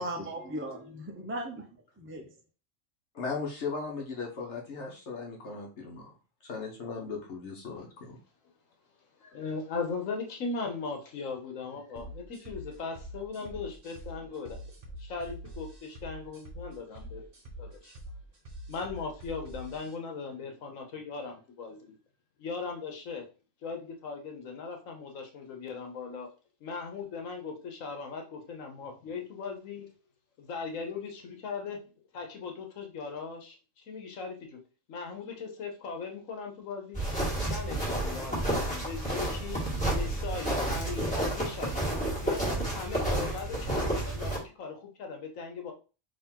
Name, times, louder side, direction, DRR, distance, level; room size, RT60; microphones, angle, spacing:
voice 1, 0.0-1.7 2.0-2.3, right 1 dB, 20° right, 3 dB, 0.3 m, -37 dB
voice 2, 3.1-6.1 6.4-8.2, left 4 dB, 65° left, 0 dB, 1.1 m, -37 dB
voice 3, 9.2-14.6 15.0-17.3 17.6-17.9 18.7-22.0 22.4-23.3 23.6-26.3 26.6-29.9 30.4-31.8 32.1-34.6 34.9-37.0 37.4-39.7 39.9-41.8 42.2-45.7, left 4 dB, 85° left, 3 dB, 1.3 m, -38 dB
sound 1, 12.0-19.9, equal, 45° right, 1.2 m, -45 dB
sound 2, 36.9-44.4, right 1 dB, 5° left, 1.8 m, -30 dB
3.7 x 2.9 x 4.4 m, 0.34 s
omnidirectional pair, 1.3 m